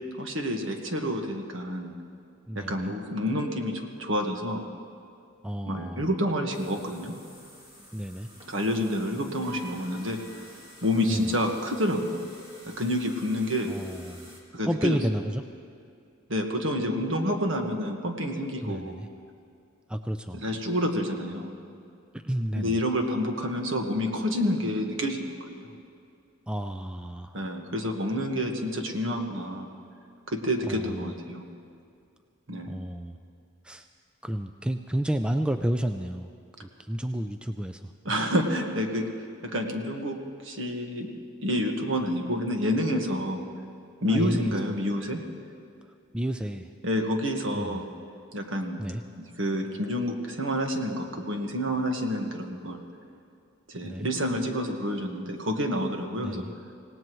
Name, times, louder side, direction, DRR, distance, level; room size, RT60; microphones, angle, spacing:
voice 1, 0.2-1.9 2.5-4.6 5.7-7.2 8.5-10.2 10.8-12.2 12.7-13.7 14.5-15.0 16.3-19.0 20.3-21.5 22.5-25.8 27.3-29.7 30.3-31.5 32.5-32.8 38.0-39.1 39.4-40.2 40.4-41.1 41.4-43.5 44.0-45.2 46.8-47.9 48.3-48.8 49.2-52.9 53.7-56.5, equal, 70° right, 3 dB, 1.5 m, -28 dB
voice 2, 2.5-2.9 5.4-6.1 7.9-8.3 11.0-11.3 13.7-14.3 14.7-15.4 18.6-19.1 19.9-20.4 22.1-22.8 26.5-27.4 30.7-31.1 32.7-33.2 33.6-33.8 34.2-36.3 36.9-37.9 44.1-44.5 46.1-46.7 47.5-47.8 48.8-49.0 53.8-54.1 56.2-56.5, equal, 5° right, 7 dB, 0.3 m, -31 dB
sound 1, 6.5-14.4, equal, 25° right, 2.2 m, -49 dB
26.0 x 17.5 x 3.1 m, 2.4 s
head